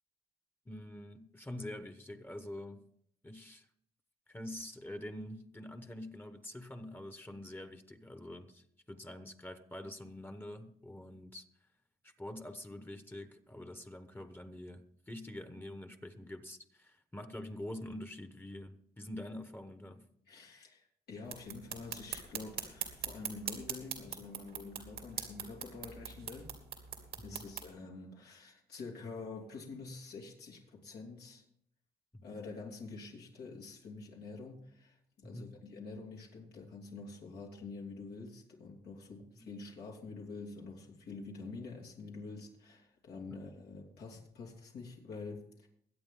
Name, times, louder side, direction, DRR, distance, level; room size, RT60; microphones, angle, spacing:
voice 1, 0.6-2.9 3.2-3.7 4.3-11.7 12.0-20.1 27.2-27.5 32.1-32.3 35.2-35.6 39.4-39.5, left 1 dB, 10° left, 1.2 m, -46 dB
voice 2, 20.3-26.5 27.2-31.4 32.2-45.7, left 3 dB, 80° left, 2.8 m, -47 dB
sound 1, 21.3-27.7, right 8 dB, 90° right, 2.5 m, -42 dB
22.0 x 8.5 x 3.9 m
cardioid pair, 85°, 17 cm